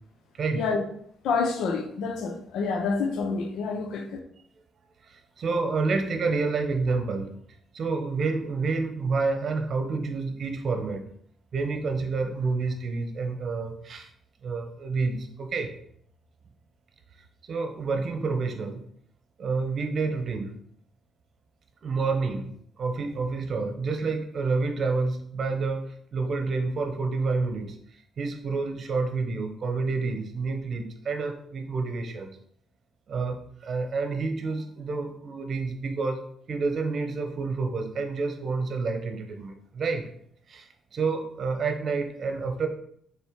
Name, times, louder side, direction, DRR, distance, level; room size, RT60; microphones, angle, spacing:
voice 1, 0.4-0.7 5.4-7.4 7.7-11.1 11.5-14.1 14.4-15.7 17.5-18.8 19.4-20.6 21.8-25.9 26.1-27.8 28.2-32.4 33.1-36.2 36.5-40.1 40.5-42.7, right 4 dB, 50° right, 1.2 m, -29 dB
voice 2, 1.2-4.2, left 4 dB, 80° left, 1.0 m, -28 dB
6.5 x 3.9 x 4.8 m
cardioid pair, 90°, 0 cm